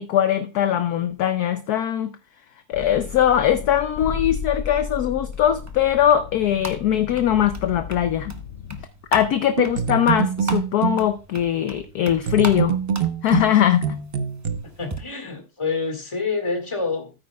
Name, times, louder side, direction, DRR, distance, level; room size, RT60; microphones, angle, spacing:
voice 1, 0.0-2.1 2.7-8.3 9.1-12.8 13.2-14.0, left 10 dB, 65° left, 1.1 m, -21 dB
sound 1, 2.7-8.8, left 7 dB, 85° left, 0.6 m, -34 dB
sound 2, 5.3-15.0, right 1 dB, 20° right, 0.4 m, -38 dB
sound 3, 9.6-11.0 12.3-14.6, right 8 dB, 45° right, 0.7 m, -24 dB
voice 2, 14.8-17.1, left 4 dB, 15° left, 1.8 m, -27 dB
14.0 x 8.9 x 2.3 m
omnidirectional pair, 2.0 m